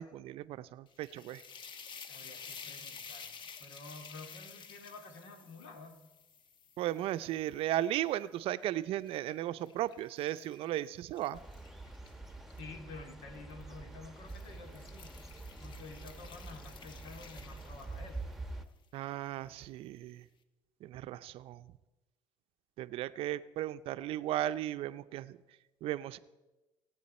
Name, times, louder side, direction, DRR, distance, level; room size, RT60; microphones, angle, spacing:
voice 1, 0.0-1.4 6.8-11.4 18.9-20.2 20.8-21.6 22.8-25.4 25.8-26.2, right 13 dB, 65° right, 13 dB, 0.6 m, -36 dB
sound 1, 0.9-8.1 8.6-12.6 13.5-13.8 14.2-18.3, left 6 dB, 50° left, 1.2 m, -52 dB
voice 2, 2.1-6.0 12.5-15.2 15.6-18.2, left 3 dB, 80° left, 4 dB, 2.4 m, -50 dB
sound 2, 11.3-18.7, right 2 dB, 5° right, 1.2 m, -46 dB
24.5 x 8.4 x 4.3 m, 1.1 s
cardioid pair, 100°, 10 cm